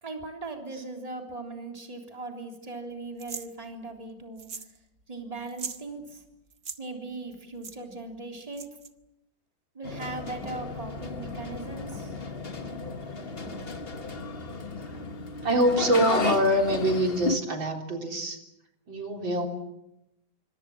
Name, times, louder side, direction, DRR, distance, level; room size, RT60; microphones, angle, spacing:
voice 1, 0.0-4.5 5.1-6.2 6.8-8.7 9.7-12.2, right 3 dB, 20° right, 2 dB, 3.5 m, -39 dB
sound 1, 3.2-3.5 4.4-4.8 5.0-5.1 5.4-5.8 6.5-6.8 7.6-7.8 8.5-8.9, right 6 dB, 45° right, 1.6 m, -39 dB
sound 2, 9.8-17.4, left 3 dB, 30° left, 1.7 m, -34 dB
sound 3, 10.4-10.7 11.1-11.4 11.9-12.2 12.7-12.9 13.4-14.4 14.9-15.2 15.5-16.0 16.5-16.7 17.4-17.6, right 1 dB, ahead, 5.7 m, -49 dB
voice 2, 15.4-18.4 18.9-19.5, equal, 80° right, 3 dB, 4.4 m, -24 dB
27.0 x 25.5 x 7.3 m, 0.87 s
omnidirectional pair, 2.1 m